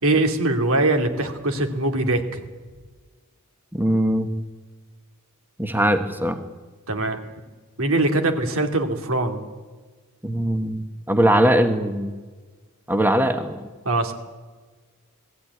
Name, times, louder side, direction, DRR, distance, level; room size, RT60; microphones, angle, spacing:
voice 1, 0.0-2.4 6.9-7.2 7.8-9.4 13.8-14.1, right 2 dB, 65° right, 5 dB, 2.6 m, -22 dB
voice 2, 3.7-4.3 5.6-6.4 10.2-12.1 12.9-13.6, right 1 dB, 10° right, 6 dB, 1.1 m, -21 dB
20.0 x 15.5 x 9.6 m, 1.4 s
head